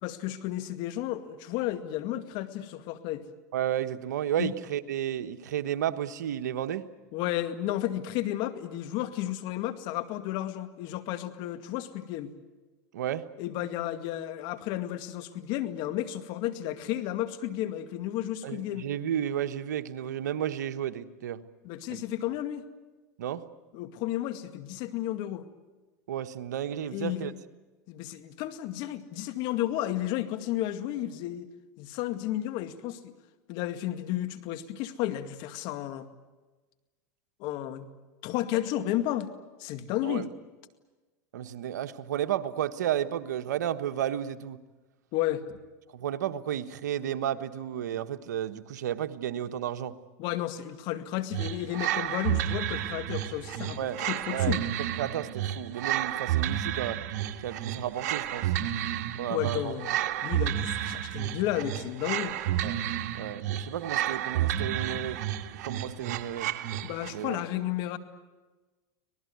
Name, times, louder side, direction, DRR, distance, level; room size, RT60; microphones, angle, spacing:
voice 1, 0.0-3.2 4.4-4.5 7.1-12.3 13.4-18.9 21.6-22.6 23.7-25.5 26.9-27.3 27.9-31.5 31.8-33.1 33.5-36.1 37.4-37.9 38.2-39.3 39.6-40.3 45.1-45.6 50.2-54.6 59.3-59.9 60.2-62.4 66.8-68.0, left 13 dB, 60° left, 9 dB, 2.2 m, -32 dB
voice 2, 3.5-6.9 12.9-13.3 18.4-21.4 21.9-22.0 23.2-23.4 26.1-27.3 40.0-40.3 41.3-44.6 45.9-50.0 53.8-54.0 54.3-57.0 57.4-58.5 59.2-59.7 62.6-62.8 63.1-65.2 65.6-66.5 67.1-67.4, right 10 dB, 85° right, 10 dB, 1.3 m, -32 dB
sound 1, 51.3-67.2, right 11 dB, 65° right, 1.9 m, -31 dB
25.5 x 19.0 x 9.5 m, 1.2 s
hypercardioid pair, 105°, 9 cm